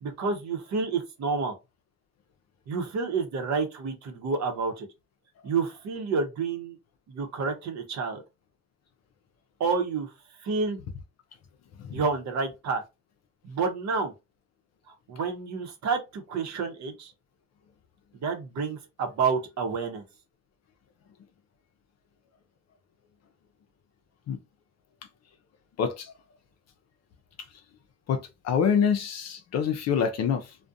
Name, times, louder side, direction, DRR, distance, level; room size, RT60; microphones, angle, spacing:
voice 1, 0.0-1.5 2.7-4.9 5.4-6.8 7.1-8.2 9.6-10.1 10.4-10.8 11.9-12.8 13.4-14.1 14.9-17.1 18.1-20.0, right 4 dB, 65° right, 0.8 m, -29 dB
voice 2, 25.8-26.1 28.1-30.6, left 7 dB, 60° left, 0.5 m, -26 dB
2.4 x 2.1 x 2.6 m
cardioid pair, 90°, 30 cm